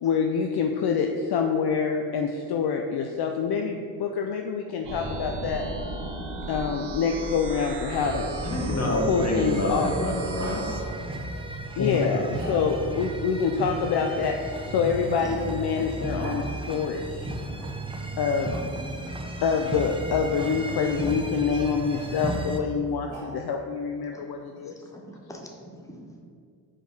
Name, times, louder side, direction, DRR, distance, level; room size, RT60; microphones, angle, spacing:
voice 1, 0.0-5.7 6.5-8.3 9.1-9.9 11.8-12.2 12.5-17.3 18.2-18.6 19.4-24.8, left 6 dB, 55° left, 4 dB, 0.6 m, -26 dB
sound 1, 4.8-10.8, right 2 dB, 60° right, 1.1 m, -35 dB
Growling, 6.3-9.7 10.4-10.6 11.9-13.0 14.3-16.4 18.3-19.0 20.3-20.4 22.8-23.6, right 2 dB, 85° right, 1.3 m, -45 dB
sound 2, 7.9-22.6, right 2 dB, 10° right, 0.7 m, -35 dB
voice 2, 8.4-10.8 11.8-12.1, left 2 dB, 35° left, -1 dB, 1.6 m, -27 dB
voice 3, 17.4-17.8 18.5-18.9 24.1-24.2 24.7-26.2, equal, 5° left, 0 dB, 1.1 m, -44 dB
5.0 x 4.8 x 4.8 m, 2.2 s
hypercardioid pair, 50°, 48 cm